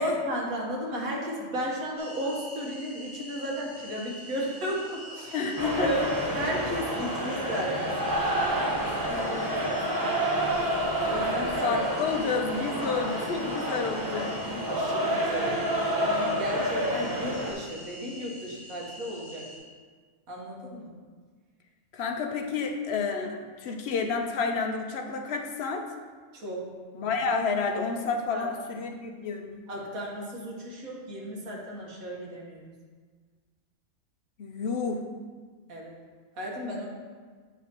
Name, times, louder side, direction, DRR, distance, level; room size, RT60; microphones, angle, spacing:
voice 1, 0.0-5.4 5.8-6.0 6.3-8.0 11.0-11.6 14.5-19.5 20.3-20.9 26.3-26.6 28.3-28.5 29.7-32.6 35.7-35.9 36.4-36.9, equal, 85° right, -2 dB, 1.7 m, -34 dB
sound 1, 2.0-19.6, equal, 70° right, 2.2 m, -46 dB
voice 2, 5.3-5.9 9.1-9.5 11.6-14.3 21.9-25.9 26.9-29.5 34.4-35.0, left 5 dB, 60° left, 4 dB, 0.8 m, -30 dB
sound 2, 5.6-17.5, right 1 dB, 20° right, 0.6 m, -29 dB
8.1 x 5.8 x 2.9 m, 1.5 s
omnidirectional pair, 1.4 m